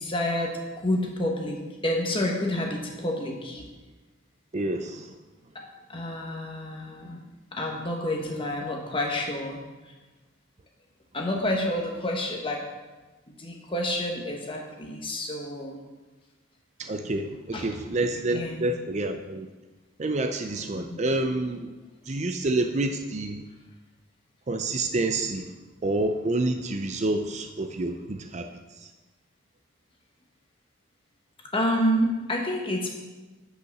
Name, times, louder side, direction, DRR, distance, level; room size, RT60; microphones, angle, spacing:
voice 1, 0.0-3.7 5.5-5.6 5.9-7.2 7.5-9.9 11.1-12.6 13.3-15.8 17.5-17.7 18.3-18.8 20.7-21.0 31.5-32.9, left 1 dB, 25° left, 1 dB, 1.3 m, -29 dB
voice 2, 4.5-5.1 16.8-19.5 20.0-21.7 22.1-23.4 24.5-25.5 25.8-28.5 28.8-28.9, right 2 dB, 35° right, 6 dB, 0.4 m, -28 dB
9.1 x 5.6 x 6.0 m, 1.2 s
head